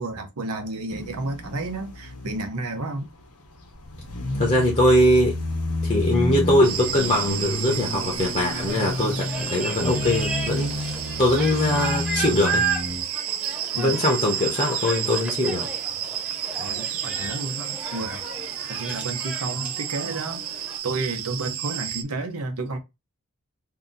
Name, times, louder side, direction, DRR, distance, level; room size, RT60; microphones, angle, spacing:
voice 1, 0.0-3.1 13.7-14.0 16.6-18.2 18.6-20.4 20.8-22.8, right 2 dB, 85° right, 0.9 m, -31 dB
sound 1, 0.9-2.6 3.2-13.0, left 1 dB, 85° left, 1.0 m, -30 dB
voice 2, 4.3-5.4 5.8-10.9 11.2-12.6 13.8-15.7, left 1 dB, 30° left, 0.8 m, -22 dB
sound 2, 6.6-22.0, right 11 dB, 65° right, 0.4 m, -32 dB
sound 3, 8.4-20.8, right 3 dB, 5° right, 0.9 m, -34 dB
2.8 x 2.6 x 3.7 m
head